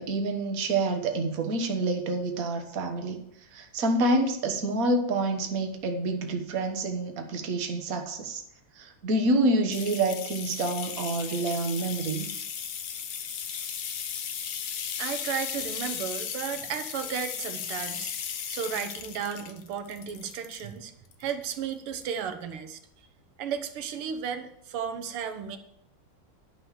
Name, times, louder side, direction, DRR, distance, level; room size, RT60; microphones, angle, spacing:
voice 1, 0.0-3.2 3.5-8.4 8.8-12.3, right 2 dB, 45° right, 5 dB, 1.6 m, -27 dB
sound 1, 9.7-20.7 21.1-21.7 22.0-22.1, left 7 dB, 55° left, 1.2 m, -36 dB
voice 2, 15.0-18.1 18.5-20.9 21.2-22.8 23.4-25.6, right 7 dB, 85° right, 8 dB, 2.0 m, -34 dB
11.5 x 5.5 x 7.3 m, 0.76 s
omnidirectional pair, 2.4 m